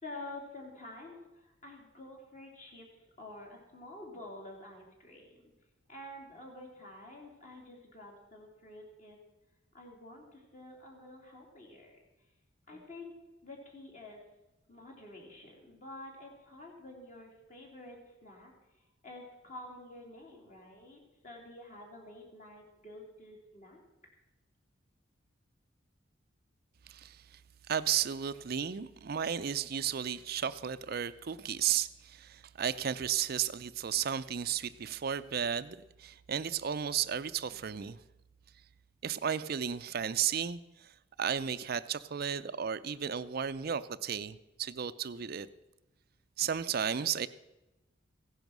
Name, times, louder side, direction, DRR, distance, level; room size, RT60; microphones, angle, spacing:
voice 1, 0.0-5.5 5.9-9.2 9.7-12.0 12.7-13.2 13.4-14.2 14.7-18.5 19.0-23.8, left 1 dB, 40° left, 3.4 m, -49 dB
voice 2, 26.9-27.4 27.7-38.0 39.0-40.9 41.2-45.5 46.4-47.3, right 8 dB, 50° right, 0.5 m, -34 dB
16.0 x 10.5 x 6.1 m
head